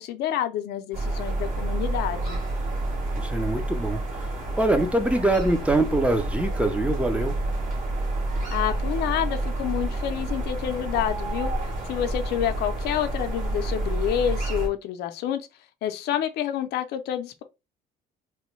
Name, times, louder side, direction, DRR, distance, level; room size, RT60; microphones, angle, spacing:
voice 1, 0.0-2.4 8.5-11.5 11.9-15.4 15.8-17.4, left 10 dB, 75° left, 0.5 m, -28 dB
sound 1, 0.9-14.7, right 2 dB, 50° right, 1.5 m, -29 dB
voice 2, 3.2-7.4, right 2 dB, 5° right, 0.5 m, -24 dB
3.0 x 2.2 x 3.1 m
cardioid pair, 110°, 17 cm